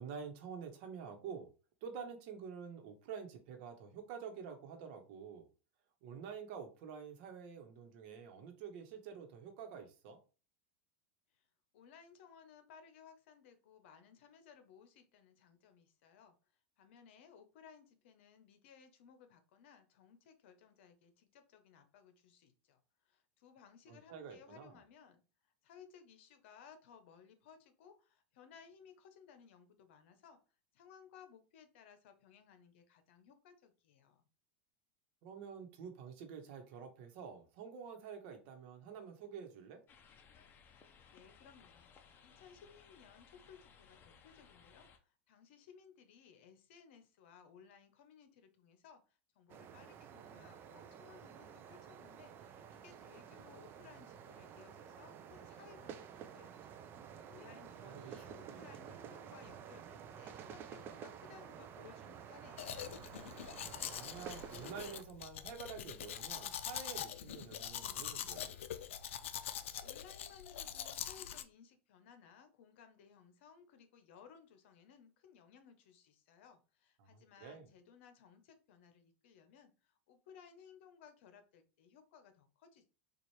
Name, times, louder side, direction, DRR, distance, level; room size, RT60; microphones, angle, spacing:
voice 1, 0.0-1.5 1.8-5.5 6.0-10.2 23.9-24.7 35.2-39.8 57.8-58.8 63.9-68.5 77.0-77.7, right 6 dB, 60° right, 1.0 m, -48 dB
voice 2, 11.7-16.3 16.8-30.4 30.7-34.3 40.8-56.8 57.0-62.8 69.4-82.9, left 7 dB, 70° left, 0.8 m, -61 dB
sound 1, 39.9-45.0, left 6 dB, 30° left, 0.6 m, -62 dB
sound 2, 49.5-65.0, right 8 dB, 35° right, 0.4 m, -51 dB
Domestic sounds home sounds, 62.6-71.4, left 10 dB, 85° left, 0.4 m, -44 dB
4.3 x 2.4 x 3.1 m
supercardioid pair, 125°, 7 cm